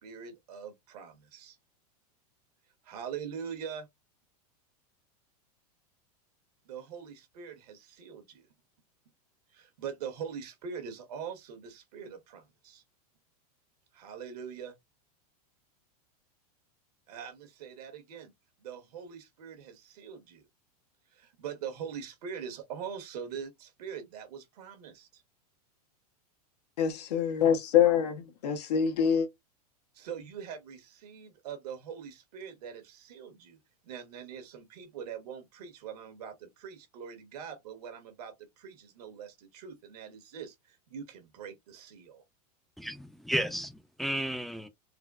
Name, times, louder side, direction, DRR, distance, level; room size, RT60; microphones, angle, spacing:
voice 1, 0.0-1.6 2.8-3.9 6.6-8.5 9.5-12.8 13.9-14.7 17.1-18.3 18.6-20.5 21.1-25.2 29.9-42.2, right 7 dB, 75° right, 1.4 m, -43 dB
voice 2, 26.8-29.3, left 8 dB, 90° left, 1.0 m, -25 dB
voice 3, 42.8-44.7, equal, ahead, 0.4 m, -33 dB
4.1 x 2.0 x 2.4 m
supercardioid pair, 145°, 20 cm